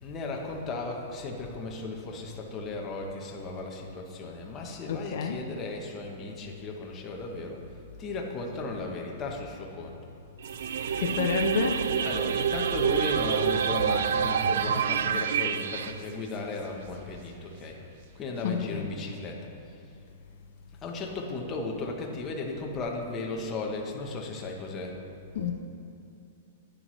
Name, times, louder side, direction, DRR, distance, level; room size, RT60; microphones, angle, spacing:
voice 1, 0.0-7.6 8.0-10.0 12.0-17.8 18.1-19.4 20.8-25.0, left 3 dB, 15° left, 0 dB, 0.8 m, -35 dB
voice 2, 4.9-5.4 11.0-11.9 18.4-18.9 25.3-25.5, left 6 dB, 50° left, 4 dB, 0.6 m, -29 dB
sound 1, 10.4-18.9, right 6 dB, 40° right, 0.8 m, -53 dB
sound 2, 10.4-15.9, right 7 dB, 80° right, 0.3 m, -27 dB
10.0 x 9.2 x 3.1 m, 2.7 s
supercardioid pair, 175°, 0 cm